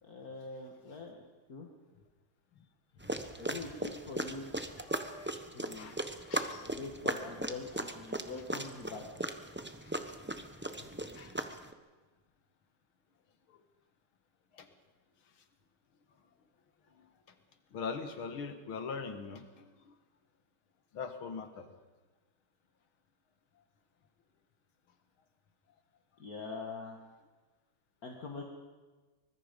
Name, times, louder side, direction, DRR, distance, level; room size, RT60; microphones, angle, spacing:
voice 1, 0.0-1.2 1.5-1.7 3.4-4.5 5.5-5.9 6.7-9.0 26.2-27.0 28.0-28.4, left 3 dB, 45° left, 1 dB, 2.2 m, -43 dB
sound 1, 3.0-11.7, right 1 dB, 15° right, 0.3 m, -38 dB
voice 2, 4.9-5.3 5.7-6.7 11.1-11.4 13.5-13.6 14.5-14.7 16.9-17.1 17.7-19.9 20.9-21.7, left 5 dB, 75° left, 8 dB, 2.4 m, -42 dB
24.5 x 20.5 x 5.3 m, 1.3 s
omnidirectional pair, 2.3 m